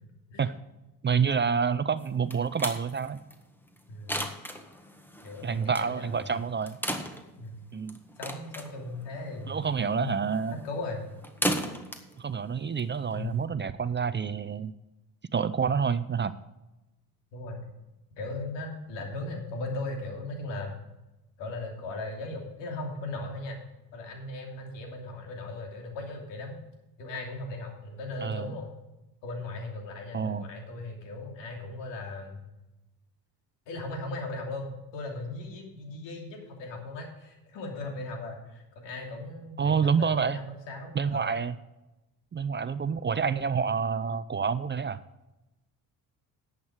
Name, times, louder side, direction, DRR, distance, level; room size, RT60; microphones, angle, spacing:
voice 1, 1.0-3.2 5.4-6.8 7.7-8.0 9.5-10.6 12.2-14.7 15.3-16.4 28.2-28.5 30.1-30.5 39.6-40.4 40.9-41.6 42.3-45.0, right 6 dB, 25° right, 14 dB, 0.5 m, -28 dB
sound 1, 2.0-13.4, equal, 5° left, 1.6 m, -37 dB
voice 2, 3.9-4.2 5.2-6.2 7.4-7.6 8.2-10.1 10.6-11.0 13.1-13.4 17.3-17.6 18.2-20.8 21.4-23.6 23.9-26.5 27.0-28.7 29.2-32.4 33.7-41.4, left 2 dB, 80° left, 2 dB, 2.9 m, -38 dB
11.0 x 8.2 x 4.8 m, 1.0 s
supercardioid pair, 65°, 43 cm